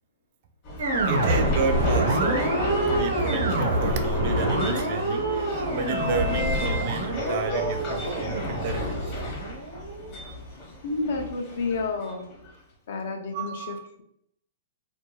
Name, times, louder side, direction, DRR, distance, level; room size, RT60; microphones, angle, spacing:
sound 1, 0.7-12.5, left 1 dB, 30° left, 0.9 m, -30 dB
sound 2, 0.8-10.1, right 2 dB, 90° right, 1.0 m, -27 dB
voice 1, 1.0-2.6 2.9-9.1 13.3-13.9, right 5 dB, 45° right, 0.3 m, -31 dB
voice 2, 10.8-12.3 12.9-14.0, left 3 dB, 60° left, 0.5 m, -30 dB
2.6 x 2.3 x 2.9 m
hypercardioid pair, 155°, 0 cm